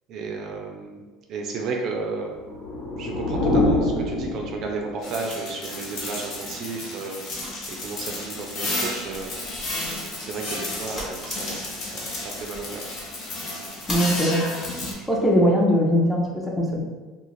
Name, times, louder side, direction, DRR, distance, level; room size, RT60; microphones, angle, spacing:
voice 1, 0.1-1.0 1.3-2.3 3.0-7.4 7.8-9.4 9.7-12.8, right 4 dB, 50° right, 1 dB, 0.4 m, -33 dB
sound 1, 2.4-5.0, left 2 dB, 70° left, 1.2 m, -25 dB
sound 2, 5.0-14.9, left 2 dB, 55° left, 0.8 m, -32 dB
sound 3, 7.4-15.4, equal, 20° left, 1.0 m, -42 dB
voice 2, 13.9-14.4 15.1-16.8, equal, 5° left, -2 dB, 0.6 m, -20 dB
2.4 x 2.4 x 3.1 m, 1.3 s
supercardioid pair, 115°, 0 cm